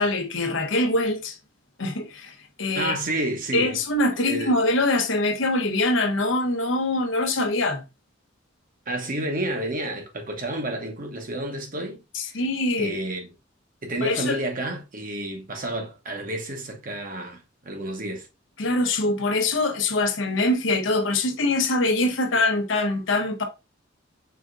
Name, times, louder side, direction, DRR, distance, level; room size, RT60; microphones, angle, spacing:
voice 1, 0.0-1.4 1.8-2.9 3.5-7.8 12.1-13.0 14.0-14.4 18.6-23.4, left 2 dB, 70° left, 0.8 m, -23 dB
voice 2, 2.7-3.8 4.1-4.5 8.9-12.4 12.8-13.3 13.8-18.3, right 1 dB, 45° right, 1.0 m, -30 dB
4.9 x 3.5 x 2.5 m
head